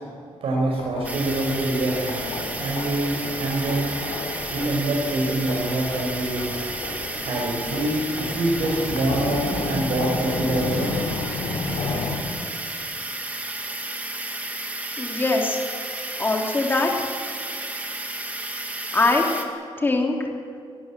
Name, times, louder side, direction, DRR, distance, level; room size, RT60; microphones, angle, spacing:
voice 1, 0.4-3.9 4.5-6.4 7.2-7.9 8.2-10.9, right 2 dB, 75° right, -3 dB, 5.9 m, -25 dB
sound 1, 0.8-12.2, left 3 dB, 75° left, 3.8 m, -32 dB
sound 2, 1.0-19.4, right 2 dB, 15° right, 2.4 m, -32 dB
voice 2, 15.0-15.6 16.2-16.9 18.9-19.2 19.8-20.1, left 3 dB, 20° left, 0 dB, 3.0 m, -21 dB
22.0 x 21.5 x 7.5 m, 2.4 s
wide cardioid pair, 165°, 10 cm